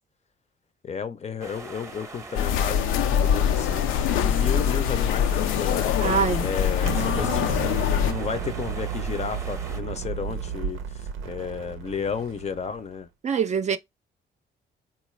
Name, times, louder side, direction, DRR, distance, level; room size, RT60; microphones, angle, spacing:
voice 1, 0.8-6.0 6.4-13.1, left 6 dB, 35° left, 0.5 m, -33 dB
sound 1, 1.4-9.8, right 3 dB, 15° right, 0.7 m, -41 dB
sound 2, 2.3-8.1, left 9 dB, 90° left, 0.4 m, -23 dB
voice 2, 6.0-6.5 13.2-13.8, right 7 dB, 35° right, 0.4 m, -24 dB
Explosion, 6.8-12.8, right 8 dB, 90° right, 0.6 m, -33 dB
3.9 x 2.4 x 3.1 m
cardioid pair, 90°, 20 cm